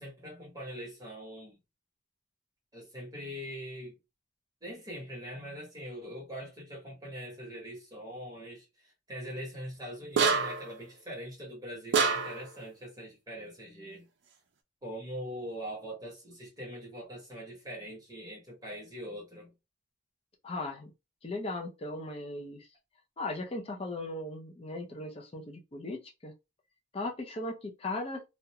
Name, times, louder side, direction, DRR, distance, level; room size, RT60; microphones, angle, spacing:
voice 1, 0.0-1.6 2.7-3.9 4.6-14.1 14.8-19.5, equal, 20° right, 0.9 m, -42 dB
sound 1, 10.2-10.7 11.9-12.5, right 5 dB, 60° right, 0.4 m, -26 dB
voice 2, 20.4-20.9 21.2-22.7 23.2-26.3 26.9-28.2, left 2 dB, 30° left, 0.4 m, -37 dB
2.4 x 2.1 x 2.7 m
head